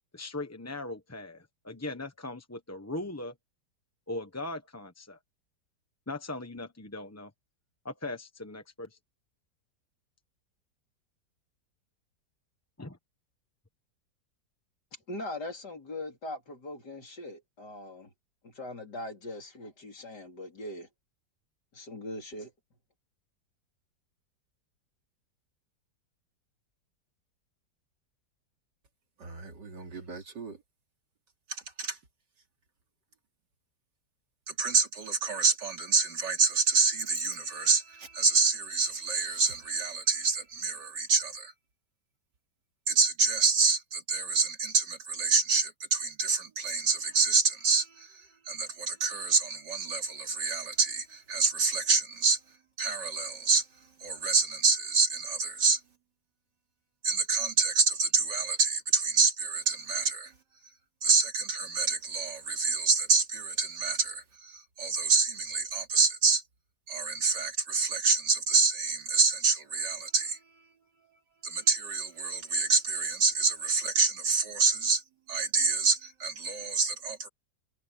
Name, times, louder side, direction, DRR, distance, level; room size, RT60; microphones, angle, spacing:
voice 1, 0.1-3.3 4.1-5.2 6.1-7.3 7.8-9.0 12.8-13.0, left 2 dB, 10° left, 0.8 m, -39 dB
voice 2, 15.1-18.1 18.4-20.9 21.7-22.5, left 1 dB, 70° left, 4.2 m, -40 dB
voice 3, 29.2-30.6 31.5-32.0 34.5-41.5 42.9-52.4 52.8-53.7 54.0-55.8 57.0-60.3 61.0-66.4 66.9-70.4 71.4-75.0 75.3-77.3, right 4 dB, 75° right, 3.3 m, -27 dB
omnidirectional pair, 1.9 m